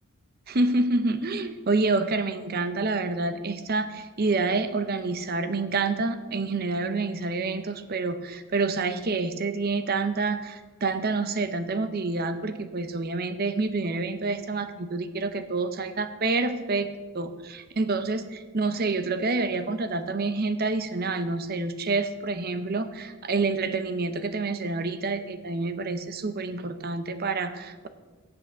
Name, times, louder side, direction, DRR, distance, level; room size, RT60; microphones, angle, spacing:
voice 1, 0.5-16.9 17.1-27.9, right 3 dB, 45° right, 10 dB, 0.7 m, -28 dB
8.6 x 7.6 x 6.6 m, 1.3 s
head